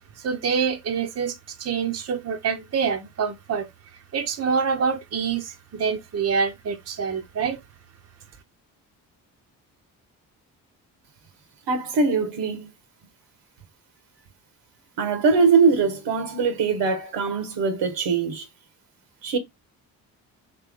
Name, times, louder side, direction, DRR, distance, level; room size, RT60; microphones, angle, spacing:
voice 1, 0.2-3.7 4.1-7.6, right 6 dB, 35° right, 0.8 m, -26 dB
voice 2, 11.7-12.7 15.0-18.5 19.2-19.4, right 5 dB, 70° right, 1.3 m, -22 dB
3.3 x 3.2 x 3.4 m
hypercardioid pair, 50°, 44 cm